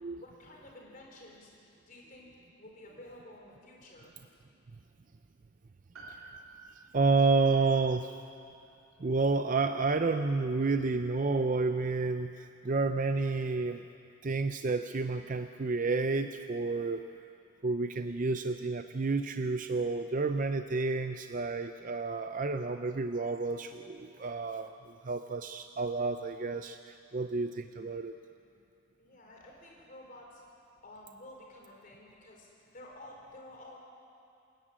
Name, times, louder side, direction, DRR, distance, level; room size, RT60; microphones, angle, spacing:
voice 1, 0.2-2.3 2.6-4.1 29.0-30.4 30.8-33.8, left 1 dB, 40° left, -2 dB, 4.4 m, -51 dB
Piano, 5.9-10.5 10.8-10.9, right 3 dB, 80° right, 4.0 m, -55 dB
voice 2, 6.9-8.1 9.0-13.8 14.2-17.1 17.6-24.7 25.0-28.1, right 3 dB, 40° right, 8 dB, 0.5 m, -30 dB
27.5 x 11.0 x 8.7 m, 2.6 s
head